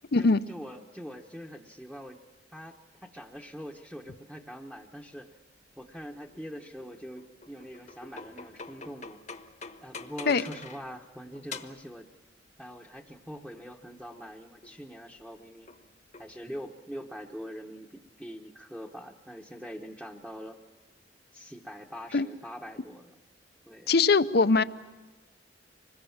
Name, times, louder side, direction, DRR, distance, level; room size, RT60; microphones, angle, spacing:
voice 1, 0.2-2.2 2.5-2.7 3.0-5.4 5.8-9.2 9.8-12.1 12.6-15.7 16.2-20.6 21.3-23.1 23.6-23.9, equal, 5° right, 0 dB, 1.1 m, -43 dB
sound 1, 6.1-11.0 11.3-11.9 13.1-14.3 14.6-14.9 15.7-16.7, left 4 dB, 40° left, 1.1 m, -46 dB
voice 2, 23.9-24.6, left 4 dB, 60° left, 13 dB, 0.7 m, -21 dB
25.5 x 21.0 x 7.3 m, 1.3 s
head